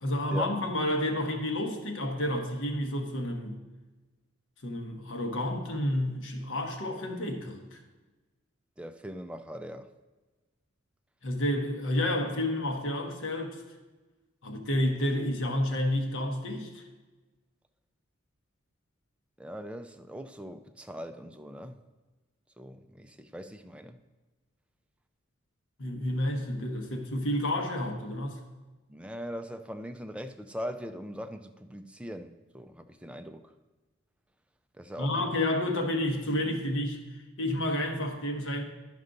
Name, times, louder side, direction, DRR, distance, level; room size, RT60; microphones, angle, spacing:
voice 1, 0.0-3.6 4.6-7.8 11.2-13.6 14.4-16.8 25.8-28.4 35.0-37.0 37.4-38.6, left 1 dB, 70° left, 1.1 m, -30 dB
voice 2, 8.8-9.9 19.4-21.8 22.6-24.0 28.9-33.5 34.8-35.3, equal, 5° right, 0.4 m, -41 dB
11.0 x 5.3 x 3.9 m
head